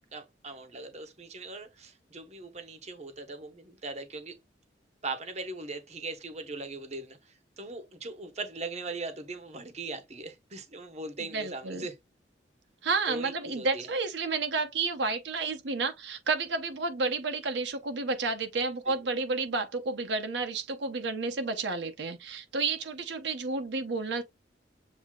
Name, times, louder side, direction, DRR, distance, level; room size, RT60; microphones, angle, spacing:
voice 1, 0.1-4.3 5.0-12.0 13.1-13.9 18.9-19.0, right 3 dB, 35° right, 0.9 m, -40 dB
voice 2, 11.2-11.9 12.8-24.2, right 3 dB, 70° right, 0.7 m, -31 dB
7.3 x 2.7 x 2.2 m
head